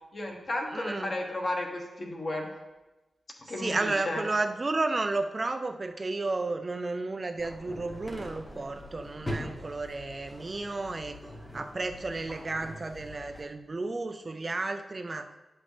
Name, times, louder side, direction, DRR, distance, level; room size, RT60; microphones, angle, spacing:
voice 1, 0.1-2.5 3.5-4.2, left 1 dB, 35° left, 1 dB, 1.2 m, -33 dB
voice 2, 0.7-1.1 3.6-11.2 11.5-15.3, right 3 dB, 30° right, 7 dB, 0.3 m, -32 dB
sound 1, 7.4-13.4, equal, 15° left, 1.0 m, -42 dB
10.5 x 5.9 x 3.2 m, 1.1 s
wide cardioid pair, 165°, 0 cm